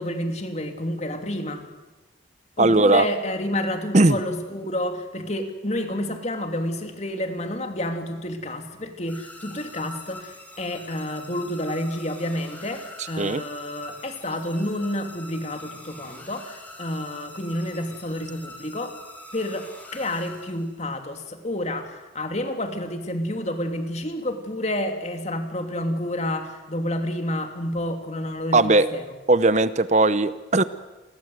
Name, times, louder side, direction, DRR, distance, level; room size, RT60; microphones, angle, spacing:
voice 1, 0.0-1.7 2.6-19.0 19.3-29.0, left 1 dB, 35° left, 6 dB, 2.9 m, -29 dB
voice 2, 2.6-3.0 3.9-4.2 13.2-13.4 28.5-28.9 29.3-30.6, right 2 dB, 40° right, 14 dB, 0.8 m, -18 dB
sound 1, 9.1-20.9, left 1 dB, 10° left, 4.4 m, -44 dB
29.0 x 22.0 x 8.1 m, 1.1 s
head